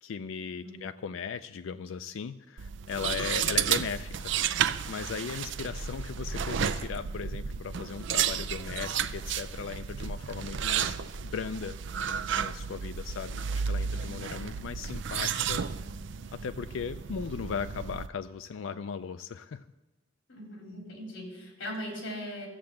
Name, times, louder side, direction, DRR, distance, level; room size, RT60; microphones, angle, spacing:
voice 1, 0.0-4.3 4.9-11.0 11.2-11.8 12.4-15.6 16.3-19.7, left 6 dB, 85° left, 10 dB, 0.4 m, -37 dB
voice 2, 0.6-0.9 20.3-22.5, equal, 70° left, 0 dB, 3.7 m, -39 dB
sound 1, 2.6-18.1, right 7 dB, 70° right, 0.5 m, -32 dB
13.5 x 7.6 x 7.1 m, 1.0 s
head